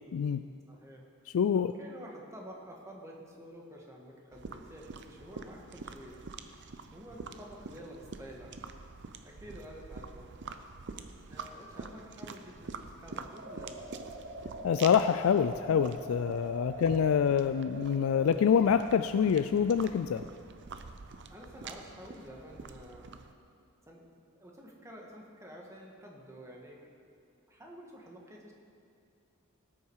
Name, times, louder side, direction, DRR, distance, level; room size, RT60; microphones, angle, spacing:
voice 1, 0.7-1.1 1.5-6.2 6.6-8.5 9.2-10.3 11.3-13.9 16.7-17.0 21.3-23.1 23.9-24.1 24.4-27.1 27.5-28.5, equal, 15° right, -1 dB, 1.6 m, -50 dB
voice 2, 1.3-1.7 14.6-20.2, left 7 dB, 75° left, 10 dB, 0.3 m, -26 dB
sound 1, 4.3-23.3, right 4 dB, 60° right, 0.6 m, -46 dB
sound 2, 13.4-18.2, right 1 dB, 90° right, 3.9 m, -44 dB
18.0 x 8.6 x 4.7 m, 2.4 s
head